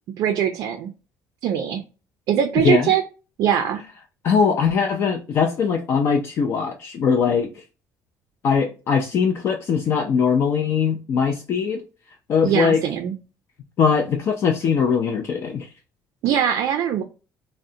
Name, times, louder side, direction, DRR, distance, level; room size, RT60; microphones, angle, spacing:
voice 1, 0.2-0.9 1.4-1.8 2.3-3.0 3.4-3.8 12.4-13.1 16.2-17.0, right 9 dB, 55° right, 0.4 m, -21 dB
voice 2, 4.2-7.6 8.4-11.8 12.3-12.8 13.8-15.7, left 6 dB, 40° left, 0.4 m, -21 dB
3.6 x 2.1 x 2.6 m
cardioid pair, 170°, 7 cm